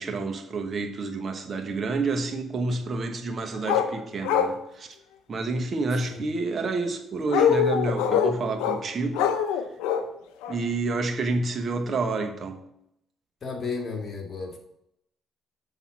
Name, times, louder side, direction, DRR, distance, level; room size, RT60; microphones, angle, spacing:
voice 1, 0.0-4.9 5.3-9.3 10.5-12.6, right 3 dB, 45° right, 1.1 m, -29 dB
sound 1, 3.7-3.9 4.2-4.6 7.3-8.8 9.1-10.0 10.4-10.6, left 8 dB, 90° left, 0.6 m, -23 dB
voice 2, 6.0-6.4 13.4-14.6, left 4 dB, 45° left, 1.9 m, -34 dB
7.1 x 3.9 x 6.2 m
supercardioid pair, 70°, 0 cm